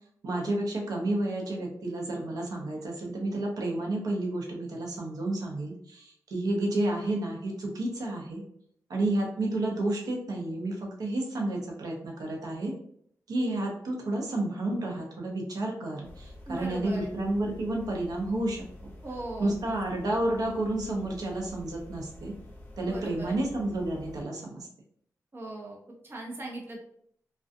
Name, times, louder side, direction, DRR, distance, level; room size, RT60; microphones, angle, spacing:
voice 1, 0.2-8.4 8.9-12.7 13.3-18.6 19.4-22.3 22.8-24.7, right 1 dB, 75° right, 0 dB, 0.7 m, -31 dB
sound 1, 16.0-24.2, left 1 dB, 30° left, 0.7 m, -48 dB
voice 2, 16.4-17.1 19.0-19.8 22.8-23.4 25.3-25.8 26.0-26.8, right 2 dB, 40° right, -2 dB, 0.7 m, -39 dB
2.4 x 2.2 x 2.6 m, 0.67 s
cardioid pair, 70°, 6 cm